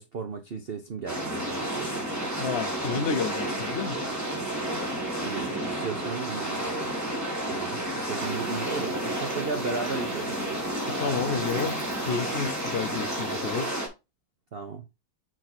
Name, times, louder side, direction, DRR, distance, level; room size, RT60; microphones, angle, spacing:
voice 1, 0.0-2.0 5.2-7.0 7.5-10.6 14.5-14.8, right 4 dB, 85° right, 0.5 m, -35 dB
sound 1, 1.1-13.9, right 1 dB, 10° right, 2.3 m, -31 dB
voice 2, 2.4-4.0 10.9-13.9, left 6 dB, 70° left, 0.5 m, -31 dB
sound 2, 8.2-13.7, left 2 dB, 15° left, 2.2 m, -49 dB
6.1 x 4.6 x 4.3 m
omnidirectional pair, 2.2 m